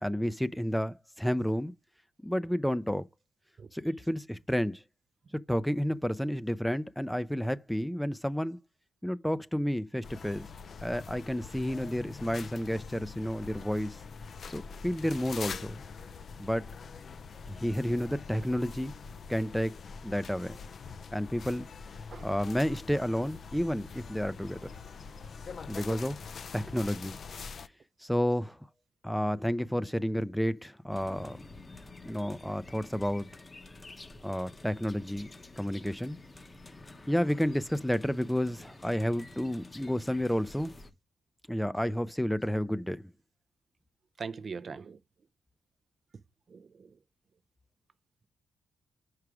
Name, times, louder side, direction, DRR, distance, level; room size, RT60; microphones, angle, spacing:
voice 1, 0.0-1.7 2.2-3.0 3.7-4.8 5.5-8.6 9.0-10.5 10.8-14.0 14.5-15.8 16.4-16.7 17.5-18.9 19.3-19.7 20.0-20.6 21.1-21.7 22.2-24.7 25.7-26.2 26.5-27.6 28.0-28.6 29.0-31.4 32.0-33.3 34.2-35.3 35.6-36.2 37.1-40.7 41.5-43.0, equal, 5° left, 0.5 m, -31 dB
sound 1, 10.0-27.7, left 5 dB, 55° left, 0.5 m, -44 dB
sound 2, 30.9-40.9, left 2 dB, 25° left, 0.9 m, -50 dB
voice 2, 44.2-45.0 46.5-47.0, right 5 dB, 50° right, 0.5 m, -41 dB
4.8 x 4.8 x 6.0 m
cardioid pair, 65°, 0 cm